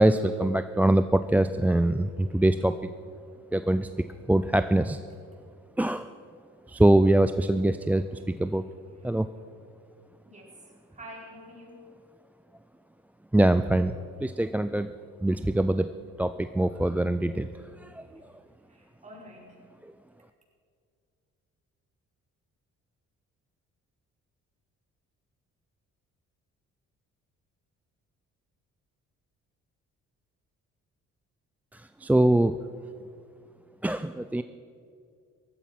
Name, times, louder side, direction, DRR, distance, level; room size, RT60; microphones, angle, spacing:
voice 1, 0.0-2.9 3.5-5.0 5.8-6.1 6.7-8.6 9.0-9.3 13.3-13.9 14.2-14.9 15.2-15.9 16.2-18.3 19.8-19.9 31.7-32.6 33.8-34.4, right 1 dB, 5° right, 10 dB, 0.4 m, -24 dB
voice 2, 10.2-11.9 18.0-18.1 18.7-19.6, equal, 25° right, -3 dB, 5.2 m, -48 dB
16.0 x 13.0 x 5.9 m, 2.3 s
cardioid pair, 90°, 30 cm